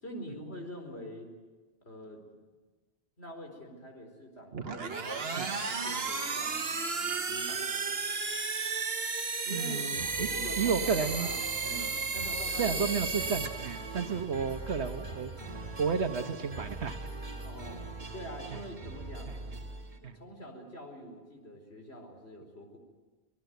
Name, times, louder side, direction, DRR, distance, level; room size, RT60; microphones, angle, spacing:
voice 1, 0.0-1.3 1.8-2.2 3.2-8.0 9.4-12.8 15.1-15.2 17.3-17.8 18.1-19.4 20.0-22.8, equal, 70° left, 3 dB, 4.8 m, -45 dB
sound 1, 4.5-14.2, right 4 dB, 65° right, 1.6 m, -34 dB
voice 2, 9.5-10.3 10.6-11.3 12.6-17.0 18.5-18.6 19.3-19.4 20.0-20.2, right 6 dB, 85° right, 8 dB, 1.6 m, -32 dB
sound 2, 9.7-20.0, right 3 dB, 45° right, 2.6 m, -42 dB
26.0 x 19.0 x 9.4 m, 1.3 s
omnidirectional pair, 1.1 m